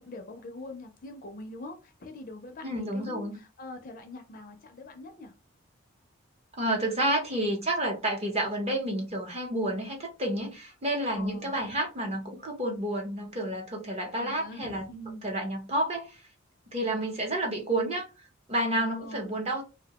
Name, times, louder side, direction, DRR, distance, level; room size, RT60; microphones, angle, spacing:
voice 1, 0.0-5.4 11.1-11.8 14.0-15.3 18.7-19.3, left 2 dB, 40° left, 0.4 m, -43 dB
voice 2, 2.6-3.4 6.6-14.9 15.2-16.2 16.7-19.6, right 1 dB, 30° right, 0.7 m, -30 dB
2.6 x 2.1 x 2.8 m
head